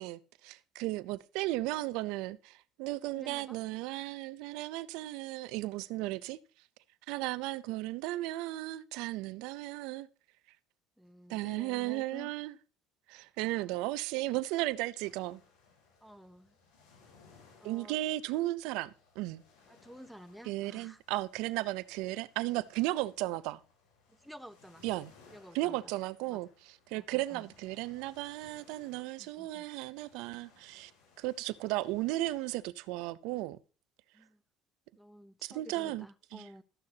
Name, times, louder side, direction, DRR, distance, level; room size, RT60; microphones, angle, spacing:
voice 1, 0.0-6.4 7.1-10.1 11.3-12.5 13.1-15.4 17.6-19.4 20.4-23.6 24.8-25.1 25.5-30.9 31.2-33.6 35.4-36.1 36.3-36.5, right 17 dB, 75° right, 0.5 m, -35 dB
voice 2, 3.1-3.6 11.0-12.3 13.6-13.7 16.0-16.5 17.6-18.0 19.7-21.0 24.1-24.8 25.3-25.9 26.3-26.4 26.9-27.5 29.2-29.7 34.1-34.4 35.0-36.6, equal, ahead, 0.7 m, -52 dB
sound 1, 15.0-32.6, left 4 dB, 90° left, 5.9 m, -64 dB
13.0 x 10.5 x 2.8 m
cardioid pair, 130°, 0 cm